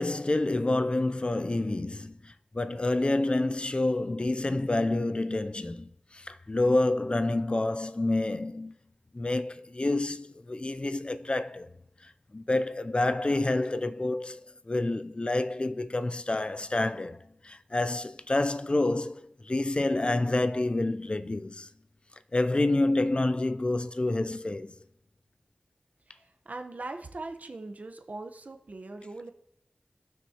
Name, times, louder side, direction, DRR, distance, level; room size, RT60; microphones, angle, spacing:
voice 1, 0.0-8.7 9.1-11.7 12.0-21.7 22.3-24.7, left 2 dB, 35° left, 0.5 m, -28 dB
voice 2, 26.1-29.3, right 2 dB, 60° right, 1.0 m, -41 dB
17.5 x 6.2 x 2.9 m
wide cardioid pair, 60°, 3 cm